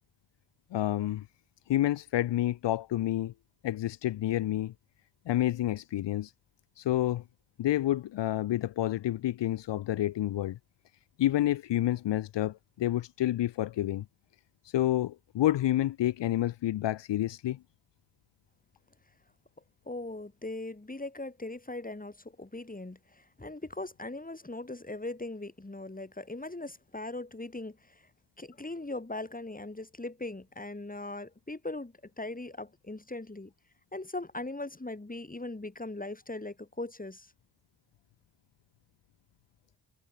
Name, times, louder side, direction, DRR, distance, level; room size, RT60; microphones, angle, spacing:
voice 1, 0.7-1.2 1.7-3.3 3.6-4.7 5.3-6.3 6.8-7.2 7.6-10.6 11.2-14.0 14.6-17.6, left 13 dB, 75° left, 0.7 m, -29 dB
voice 2, 19.9-28.0 28.4-33.5 33.9-37.3, left 2 dB, 20° left, 5.6 m, -40 dB
cardioid pair, 60°, 43 cm